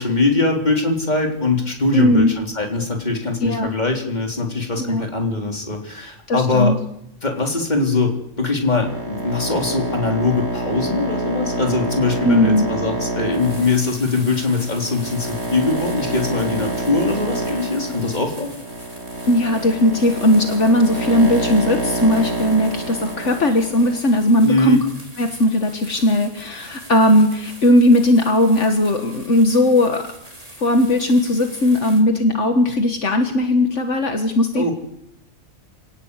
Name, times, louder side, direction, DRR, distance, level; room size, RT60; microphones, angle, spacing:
voice 1, 0.0-6.8 7.2-18.5 24.4-24.8 34.5-34.7, left 3 dB, 35° left, 2 dB, 3.9 m, -21 dB
voice 2, 1.9-2.3 3.4-3.7 4.8-5.0 6.3-6.8 12.2-12.7 19.3-24.8 25.2-30.1 30.6-34.7, left 1 dB, 70° left, 6 dB, 1.9 m, -17 dB
sound 1, 8.8-24.0, right 2 dB, 60° right, 3.3 m, -27 dB
sound 2, 13.1-32.0, right 1 dB, 30° right, 4.2 m, -42 dB
26.5 x 18.0 x 8.3 m, 0.79 s
omnidirectional pair, 1.3 m